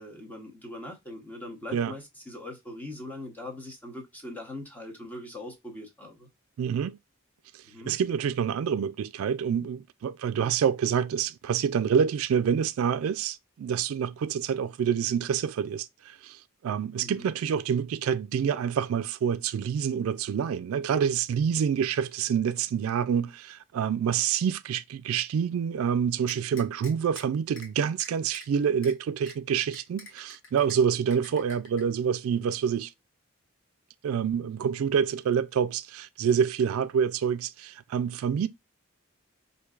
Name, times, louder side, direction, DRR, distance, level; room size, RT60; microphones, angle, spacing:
voice 1, 0.0-6.3 7.6-8.0 17.0-17.3 31.3-31.4, left 1 dB, 10° left, 0.9 m, -41 dB
voice 2, 6.6-7.0 7.9-32.9 34.0-38.5, right 7 dB, 80° right, 0.3 m, -27 dB
sound 1, 26.3-27.2 27.6-27.7 28.0-28.5 28.8-28.9 29.3-29.4 29.7-30.8 31.1-31.8, left 3 dB, 60° left, 1.4 m, -46 dB
4.4 x 2.7 x 2.3 m
head